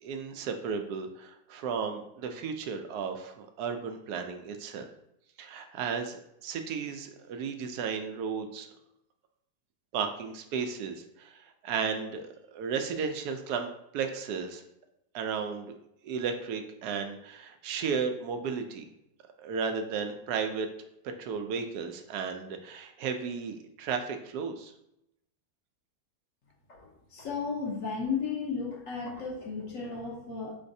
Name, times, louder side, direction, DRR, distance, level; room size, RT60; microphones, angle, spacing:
voice 1, 0.0-4.9 5.4-8.7 9.9-14.6 15.1-15.7 16.0-18.9 19.4-20.7 21.2-24.7, right 6 dB, 80° right, 6 dB, 1.1 m, -34 dB
voice 2, 26.7-30.6, left 5 dB, 60° left, -2 dB, 1.3 m, -34 dB
4.2 x 3.9 x 2.6 m, 0.81 s
omnidirectional pair, 1.7 m